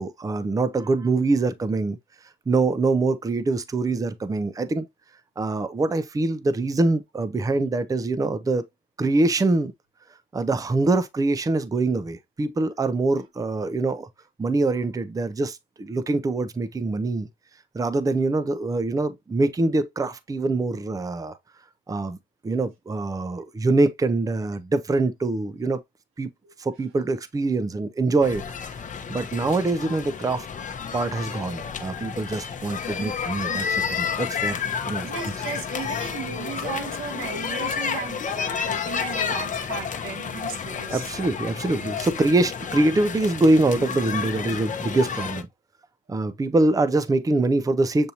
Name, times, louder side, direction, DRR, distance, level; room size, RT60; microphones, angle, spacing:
voice 1, 0.0-2.0 2.5-4.9 5.4-8.6 9.0-9.7 10.3-14.1 14.4-17.3 17.7-21.4 21.9-22.2 22.4-25.8 26.2-26.3 26.6-28.7 29.1-30.5 30.9-34.6 34.9-35.1 40.9-45.5 46.1-48.1, right 2 dB, 15° right, 0.5 m, -24 dB
sound 1, 28.2-45.4, left 6 dB, 40° left, 0.8 m, -31 dB
voice 2, 35.0-41.1, right 6 dB, 90° right, 1.2 m, -35 dB
7.0 x 2.6 x 2.8 m
cardioid pair, 90°, 20 cm